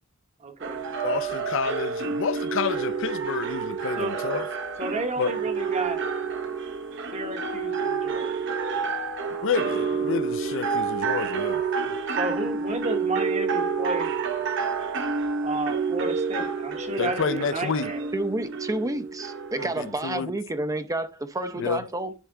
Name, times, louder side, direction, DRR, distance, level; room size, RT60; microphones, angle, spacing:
voice 1, 0.4-0.8 3.9-4.2 4.8-6.0 7.1-8.6 12.1-14.1 15.4-18.0, right 2 dB, 35° right, 1.1 m, -32 dB
sound 1, 0.6-20.2, right 5 dB, 60° right, 1.0 m, -29 dB
voice 2, 1.0-4.5 5.2-5.3 9.4-11.6 17.0-17.9 19.5-20.3 21.6-21.8, left 5 dB, 65° left, 0.5 m, -29 dB
voice 3, 18.1-22.1, right 2 dB, 15° right, 0.6 m, -30 dB
10.0 x 3.5 x 3.7 m
head